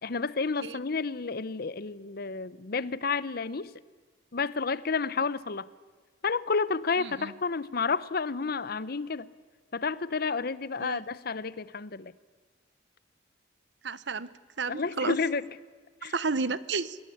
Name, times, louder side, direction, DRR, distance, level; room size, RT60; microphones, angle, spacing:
voice 1, 0.0-3.7 4.3-5.7 6.2-9.3 9.7-12.1 14.7-15.5 16.0-16.1, left 4 dB, 55° left, 0.8 m, -30 dB
voice 2, 7.0-7.3 10.8-11.0 13.8-14.3 14.6-15.2 16.1-17.0, right 4 dB, 75° right, 1.0 m, -31 dB
26.0 x 22.0 x 8.5 m
head